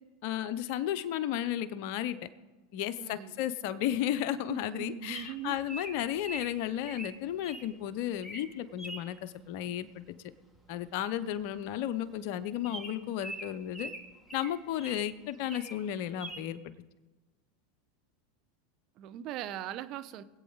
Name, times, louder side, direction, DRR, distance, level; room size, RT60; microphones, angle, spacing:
voice 1, 0.2-2.2 2.7-10.0 10.7-13.9 14.3-16.7, left 11 dB, 60° left, 13 dB, 0.8 m, -33 dB
voice 2, 3.0-3.3 4.5-5.6 19.0-20.2, right 11 dB, 50° right, 12 dB, 0.8 m, -40 dB
Bird vocalization bird call bird song, 5.1-7.7 8.1-8.5 8.8-9.1 10.5-10.8 11.0-11.1 11.4-11.6 12.0-12.1 12.6-15.1 15.4-15.8 16.2-16.4, right 1 dB, ahead, 2.6 m, -43 dB
22.5 x 8.7 x 4.1 m, 1.2 s
hypercardioid pair, 90°, 0 cm